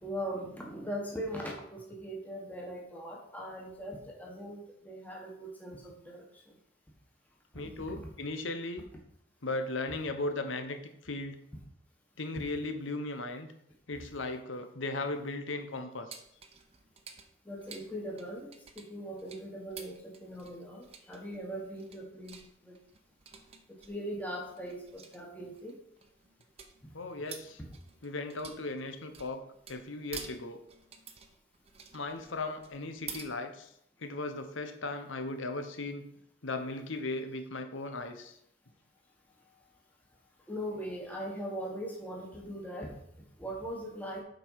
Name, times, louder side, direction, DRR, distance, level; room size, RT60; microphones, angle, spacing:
voice 1, 0.0-6.2 7.7-8.1 12.3-12.4 17.4-22.7 23.8-25.8 26.8-26.9 27.6-27.7 40.5-43.0 43.4-44.2, equal, 10° left, -2 dB, 1.5 m, -40 dB
voice 2, 7.5-8.9 9.4-10.8 11.0-11.4 12.2-13.5 13.9-16.2 26.9-27.6 28.0-29.4 29.7-30.6 31.9-33.7 34.0-36.0 36.4-38.4, left 2 dB, 85° left, 7 dB, 1.0 m, -37 dB
sound 1, 16.1-33.3, right 6 dB, 30° right, 0.8 m, -50 dB
7.8 x 5.2 x 5.7 m, 0.75 s
head